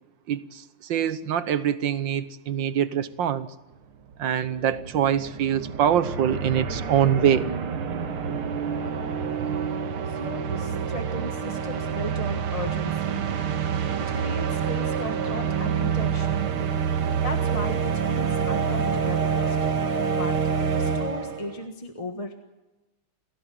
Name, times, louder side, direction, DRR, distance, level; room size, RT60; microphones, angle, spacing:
voice 1, 0.3-3.5 4.2-7.5, right 9 dB, 65° right, 1.7 m, -24 dB
sound 1, 3.8-3.9 4.1-21.6, right 7 dB, 85° right, 2.4 m, -27 dB
voice 2, 10.0-13.3 14.0-16.5 17.2-19.6 20.1-22.4, left 1 dB, 20° left, 1.3 m, -36 dB
29.5 x 16.5 x 7.9 m
omnidirectional pair, 2.3 m